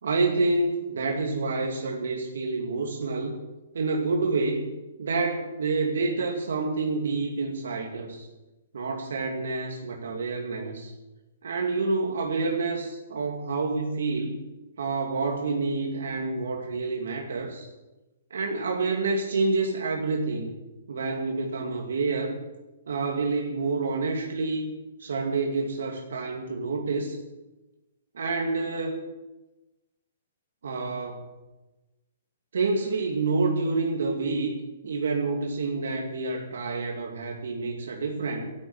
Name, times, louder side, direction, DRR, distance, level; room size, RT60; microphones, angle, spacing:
voice 1, 0.0-3.4 3.7-4.7 5.0-8.3 8.7-10.9 11.4-14.4 14.8-17.7 18.3-20.5 20.9-22.4 22.9-24.7 25.0-27.2 28.1-29.0 30.6-31.2 32.5-34.6 34.8-38.5, right 3 dB, 80° right, 1 dB, 2.4 m, -28 dB
13.0 x 8.6 x 9.6 m, 1.1 s
hypercardioid pair, 155°, 0 cm